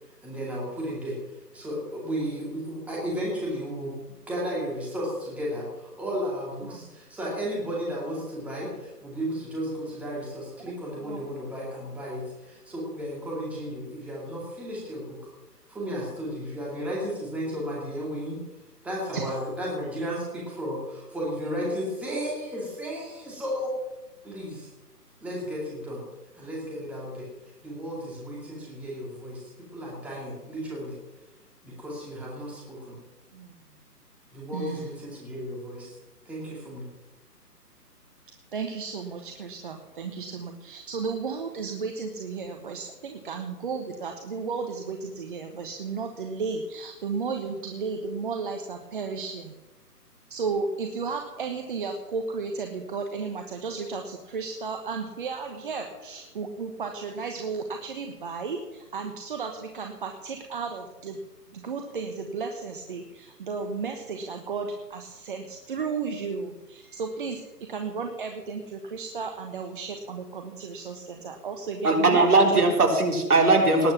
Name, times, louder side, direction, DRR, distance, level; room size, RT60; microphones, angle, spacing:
voice 1, 0.2-1.2 1.5-4.0 4.3-15.2 15.7-18.4 18.8-23.8 24.2-24.7 25.2-26.0 26.3-27.3 27.6-29.4 29.7-31.0 31.6-33.0 34.3-36.0 36.3-36.9, equal, 5° right, -4 dB, 2.3 m, -33 dB
voice 2, 19.1-19.5 33.3-33.5 34.5-35.0 38.5-49.5 50.3-61.2 61.5-72.7, right 5 dB, 30° right, 4 dB, 1.2 m, -34 dB
voice 3, 71.8-73.9, right 3 dB, 65° right, 1 dB, 4.1 m, -19 dB
19.0 x 8.1 x 7.1 m, 1.1 s
figure-of-eight pair, 155°, 48 cm